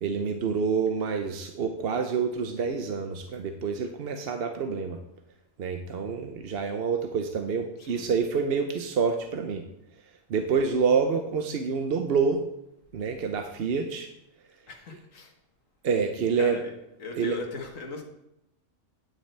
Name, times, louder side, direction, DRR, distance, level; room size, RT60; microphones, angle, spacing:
voice 1, 0.0-5.0 5.6-9.6 10.3-12.4 12.9-14.1 15.8-16.6 17.1-17.4, right 5 dB, 55° right, 6 dB, 0.8 m, -27 dB
voice 2, 14.7-15.3 16.4-16.7 17.0-18.0, left 3 dB, 75° left, 2 dB, 1.8 m, -38 dB
9.7 x 8.3 x 3.3 m, 0.84 s
omnidirectional pair, 1.4 m